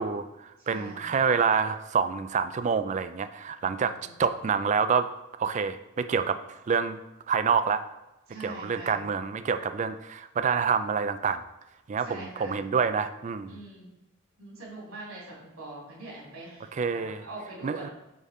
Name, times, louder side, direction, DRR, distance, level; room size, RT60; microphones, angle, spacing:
voice 1, 0.0-3.9 4.2-5.1 5.4-7.0 7.3-7.8 8.4-11.4 11.9-13.6 16.8-17.3 17.6-17.9, right 6 dB, 35° right, 10 dB, 0.3 m, -27 dB
voice 2, 0.6-1.1 3.7-4.2 8.3-9.0 12.0-12.6 13.5-13.9 14.4-17.9, right 2 dB, 90° right, -4 dB, 2.3 m, -43 dB
8.2 x 3.5 x 3.7 m, 0.96 s
head